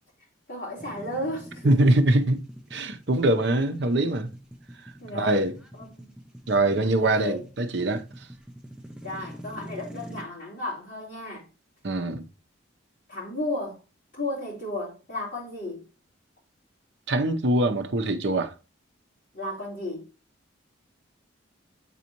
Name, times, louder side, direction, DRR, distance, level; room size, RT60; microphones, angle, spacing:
voice 1, 0.5-1.7 5.0-5.4 5.8-6.1 6.8-7.4 9.0-11.5 13.1-13.8 14.1-15.9 19.3-20.1, left 1 dB, 40° left, 3.5 m, -34 dB
sound 1, 0.8-10.2, equal, 5° right, 0.6 m, -45 dB
voice 2, 1.6-2.4 2.7-4.3 4.8-5.5 6.5-8.3 11.8-12.3 17.1-18.5, right 1 dB, 60° right, 0.7 m, -23 dB
8.3 x 4.1 x 2.9 m
head